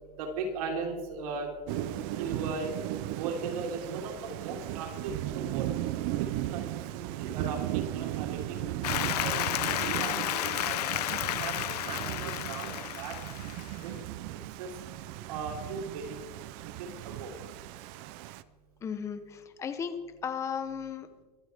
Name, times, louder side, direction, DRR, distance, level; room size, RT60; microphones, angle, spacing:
voice 1, 0.2-1.5 1.9-2.7 3.1-5.7 6.5-6.7 6.9-10.8 11.3-13.2 13.8-14.0 14.6-14.8 15.3-16.2 16.8-17.3, right 4 dB, 60° right, 1 dB, 3.9 m, -38 dB
Thunder / Rain, 1.7-18.4, right 14 dB, 35° right, 0.5 m, -36 dB
Applause, 8.8-13.9, left 13 dB, 70° left, 0.9 m, -32 dB
voice 2, 18.8-20.0 20.2-21.1, left 7 dB, 15° left, 10 dB, 0.8 m, -35 dB
24.0 x 13.0 x 3.5 m, 1.3 s
supercardioid pair, 165°, 21 cm